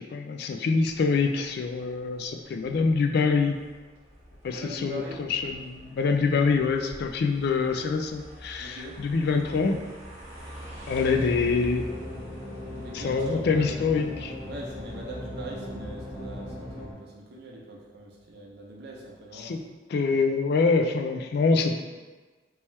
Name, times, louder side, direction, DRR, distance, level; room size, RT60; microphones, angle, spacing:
voice 1, 0.1-3.6 4.4-9.8 10.9-11.9 12.9-14.3 19.4-19.6 19.9-21.8, left 4 dB, 60° left, 4 dB, 0.3 m, -25 dB
sound 1, 0.7-16.8, right 1 dB, 35° right, 1.0 m, -45 dB
voice 2, 4.5-5.2 8.6-9.0 11.1-11.4 12.6-13.8 14.4-19.5, right 1 dB, 65° right, -2 dB, 0.7 m, -42 dB
sound 2, 11.2-16.9, left 1 dB, 35° left, 1.1 m, -39 dB
3.3 x 2.9 x 3.1 m, 1.3 s
head